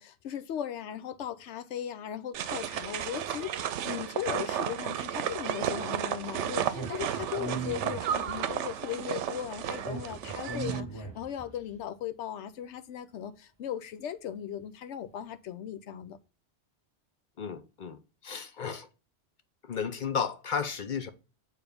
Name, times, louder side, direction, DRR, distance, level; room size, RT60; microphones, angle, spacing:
voice 1, 0.0-16.2, left 10 dB, 80° left, 1.0 m, -38 dB
sound 1, 2.3-10.8, right 9 dB, 90° right, 0.9 m, -33 dB
Speech, 6.7-8.5 9.8-11.6, right 4 dB, 20° left, 3.0 m, -38 dB
voice 2, 17.4-18.9 19.6-21.1, left 6 dB, 50° left, 0.7 m, -33 dB
6.9 x 3.3 x 5.1 m
omnidirectional pair, 1.2 m